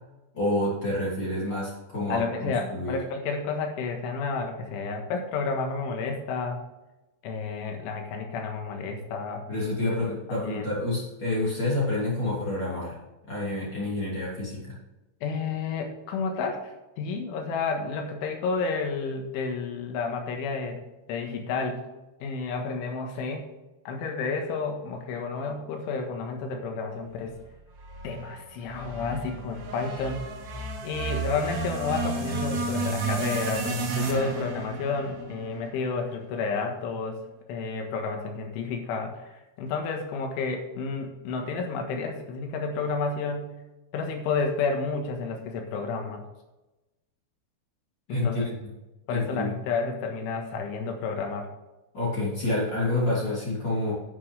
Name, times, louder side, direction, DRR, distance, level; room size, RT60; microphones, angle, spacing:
voice 1, 0.3-3.0 9.5-13.0 13.3-14.8 48.1-48.7 49.1-49.6 51.9-53.9, left 2 dB, 25° left, -6 dB, 2.9 m, -28 dB
voice 2, 2.1-6.6 7.2-9.4 10.4-10.7 15.2-16.6 17.0-20.8 21.1-21.8 22.2-23.5 23.9-27.3 28.0-30.3 30.8-37.2 37.5-43.5 43.9-46.2 48.1-48.5 49.1-51.5, left 4 dB, 70° left, 3 dB, 3.8 m, -31 dB
sound 1, 27.8-36.1, right 3 dB, 75° right, 1.6 m, -32 dB
9.6 x 9.6 x 3.4 m, 1.0 s
omnidirectional pair, 6.0 m